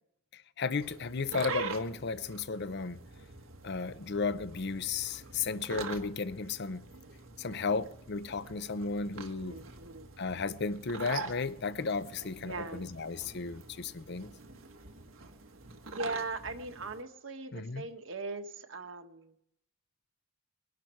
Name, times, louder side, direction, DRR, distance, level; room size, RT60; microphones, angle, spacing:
voice 1, 0.3-3.0 3.6-6.8 7.4-9.6 10.2-14.3 17.5-17.9, left 4 dB, 55° left, 0.7 m, -34 dB
sound 1, 0.8-17.0, right 4 dB, 85° right, 1.7 m, -45 dB
voice 2, 9.3-10.1 12.4-12.9 15.9-19.3, right 3 dB, 70° right, 1.4 m, -40 dB
21.0 x 12.0 x 4.6 m
head